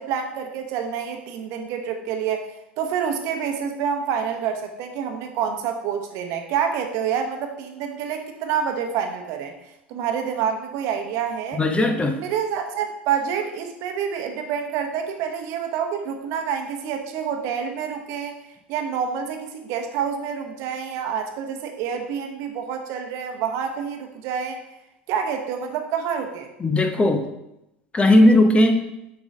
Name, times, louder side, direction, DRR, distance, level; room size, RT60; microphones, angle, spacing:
voice 1, 0.0-2.5 2.8-9.5 9.9-11.6 12.1-18.4 18.7-24.6 25.1-26.5, right 7 dB, 55° right, 5 dB, 1.0 m, -27 dB
voice 2, 11.5-12.2 26.6-27.3 27.9-28.9, left 1 dB, 20° left, 6 dB, 0.8 m, -17 dB
7.0 x 3.9 x 5.0 m, 0.88 s
figure-of-eight pair, 75°, 6 cm